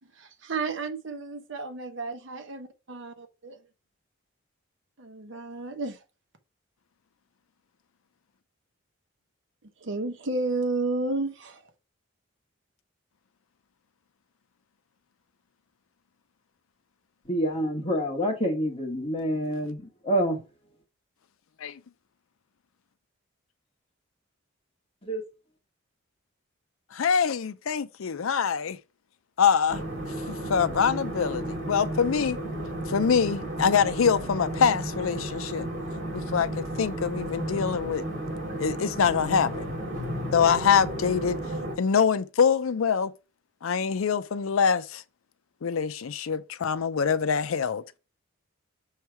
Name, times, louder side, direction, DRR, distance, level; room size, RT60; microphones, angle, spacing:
voice 1, 0.2-3.6 5.0-6.0 9.8-11.6, right 3 dB, 60° right, 1.0 m, -32 dB
voice 2, 17.3-20.4 25.0-25.2, equal, 30° left, 1.4 m, -27 dB
voice 3, 26.9-28.8 29.4-29.8 30.3-32.4 32.9-35.7 36.1-38.1 38.6-39.7 40.3-41.4 41.8-43.1 43.6-45.0 45.6-48.0, left 6 dB, 85° left, 0.5 m, -24 dB
sound 1, 29.7-41.7, right 1 dB, 45° right, 3.2 m, -33 dB
6.4 x 3.2 x 4.6 m
head